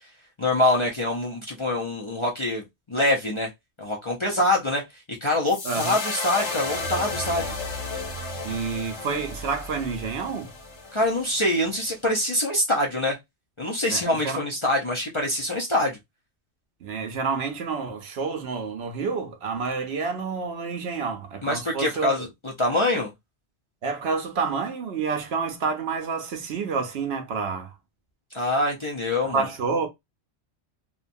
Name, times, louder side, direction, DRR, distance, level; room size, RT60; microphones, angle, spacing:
voice 1, 0.4-3.5 3.8-4.8 5.2-7.5 10.9-13.2 13.6-16.0 21.4-23.1 28.3-29.5, left 1 dB, 35° left, 0.5 m, -25 dB
sound 1, 5.5-11.8, left 2 dB, 75° left, 1.3 m, -33 dB
voice 2, 5.6-6.0 8.4-10.5 13.9-14.4 16.8-22.3 23.8-27.7 29.2-29.9, right 5 dB, 70° right, 0.9 m, -29 dB
2.9 x 2.2 x 2.5 m
omnidirectional pair, 1.2 m